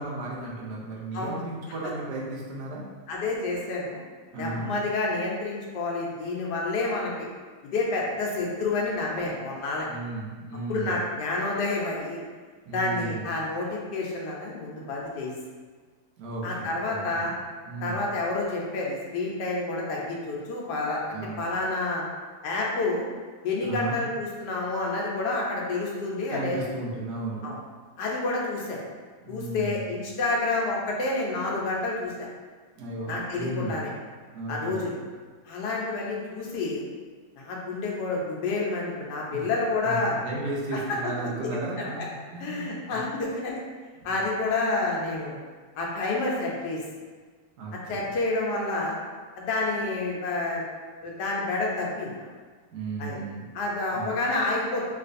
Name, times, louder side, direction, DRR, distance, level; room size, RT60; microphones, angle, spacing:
voice 1, 0.0-2.8 4.3-4.7 9.9-11.0 12.6-13.3 16.2-17.3 17.6-18.1 21.1-21.4 23.6-24.0 26.3-27.4 29.2-29.8 32.8-33.9 34.3-34.9 39.3-39.4 39.8-42.0 42.3-43.1 44.0-44.1 47.6-48.1 52.7-53.5 53.9-54.1, right 2 dB, 75° right, -4 dB, 1.2 m, -35 dB
voice 2, 3.1-4.0 4.4-7.3 7.7-9.9 10.7-12.2 12.7-15.3 16.4-17.3 17.8-22.0 22.4-23.0 23.4-26.6 27.4-27.6 28.0-28.8 29.3-32.3 33.1-33.9 34.5-34.9 35.4-36.8 37.4-40.1 40.7-41.0 41.5-42.1 42.4-43.6 44.0-45.4 45.8-46.8 47.9-49.0 49.4-50.6 51.0-52.3 53.0-53.2 53.5-54.9, left 2 dB, 85° left, -2 dB, 1.3 m, -29 dB
3.2 x 2.9 x 2.5 m, 1.5 s
omnidirectional pair, 1.8 m